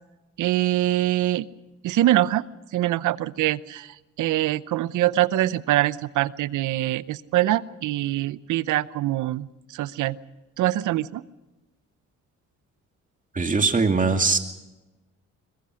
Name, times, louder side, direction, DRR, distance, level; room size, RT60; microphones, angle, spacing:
voice 1, 0.4-1.5 1.8-2.4 2.7-10.2 10.6-11.2, right 14 dB, 80° right, 17 dB, 0.8 m, -24 dB
voice 2, 13.3-14.4, right 4 dB, 25° right, 5 dB, 2.4 m, -21 dB
23.0 x 21.0 x 6.4 m, 1.0 s
cardioid pair, 90°, 30 cm